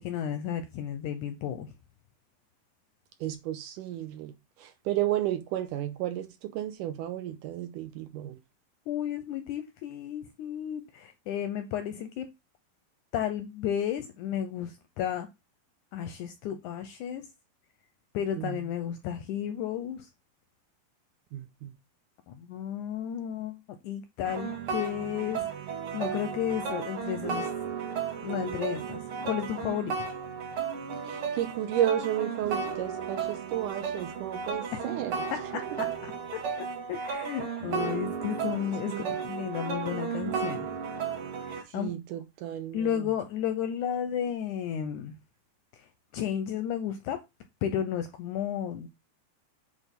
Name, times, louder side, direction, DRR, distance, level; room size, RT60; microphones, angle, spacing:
voice 1, 0.0-1.7 8.9-12.3 13.1-15.3 15.9-17.3 18.1-20.1 22.3-27.5 28.2-30.1 34.7-34.8 35.3-35.4 35.8-40.7 41.4-42.0 42.7-45.2 45.8-45.9 46.1-47.2 47.6-48.9, left 9 dB, 75° left, 1.8 m, -33 dB
voice 2, 3.2-4.3 4.6-8.4 18.4-18.6 21.3-21.7 31.1-35.2 38.9-39.2 41.7-43.0, right 12 dB, 75° right, 2.1 m, -32 dB
sound 1, 24.2-41.6, right 6 dB, 50° right, 1.9 m, -34 dB
8.6 x 3.5 x 5.3 m
omnidirectional pair, 4.2 m